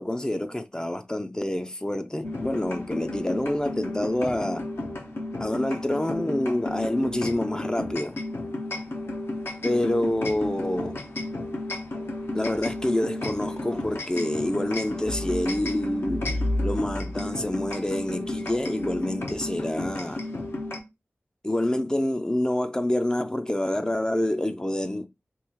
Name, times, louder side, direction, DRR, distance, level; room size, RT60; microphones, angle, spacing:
voice 1, 0.0-4.7 5.4-8.2 9.6-11.0 12.3-16.3 16.6-20.3 21.4-25.1, left 1 dB, 20° left, 0.4 m, -27 dB
sound 1, 2.2-20.8, left 2 dB, 70° left, 0.7 m, -32 dB
3.0 x 2.4 x 3.5 m
wide cardioid pair, 70°, 4 cm